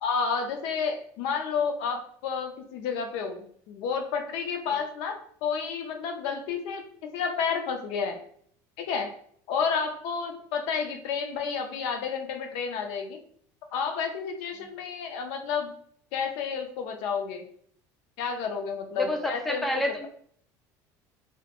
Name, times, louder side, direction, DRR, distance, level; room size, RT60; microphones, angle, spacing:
voice 1, 0.0-6.8 7.1-8.2 8.8-9.1 9.5-13.2 13.7-15.7 16.1-17.4 18.2-20.1, left 6 dB, 75° left, 4 dB, 0.4 m, -30 dB
voice 2, 19.0-20.1, left 1 dB, ahead, 2 dB, 0.3 m, -29 dB
2.2 x 2.1 x 2.8 m, 0.62 s
cardioid pair, 125°, 9 cm